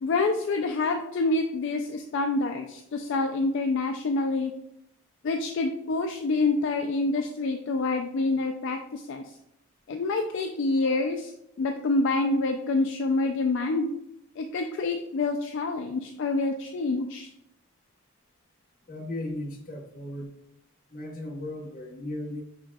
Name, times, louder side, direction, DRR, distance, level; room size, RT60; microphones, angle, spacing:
voice 1, 0.0-4.5 5.2-9.3 9.9-11.3 11.6-13.9 14.4-17.3, left 3 dB, 55° left, 5 dB, 0.3 m, -27 dB
voice 2, 18.9-20.3 20.9-22.4, left 1 dB, 40° left, 1 dB, 0.8 m, -36 dB
6.6 x 3.4 x 2.3 m, 0.82 s
head